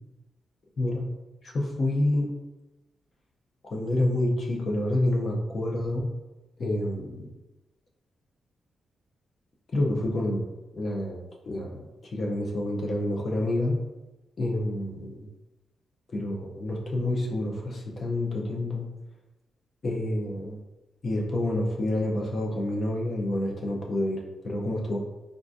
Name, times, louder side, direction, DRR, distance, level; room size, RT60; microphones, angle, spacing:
voice 1, 0.8-1.1 1.4-2.3 3.6-6.1 6.6-7.3 9.7-10.5 10.7-13.8 14.4-15.3 16.1-18.9 19.8-20.6 21.0-25.0, left 1 dB, 35° left, 0 dB, 0.5 m, -28 dB
3.6 x 2.4 x 2.5 m, 1.0 s
wide cardioid pair, 175°, 0 cm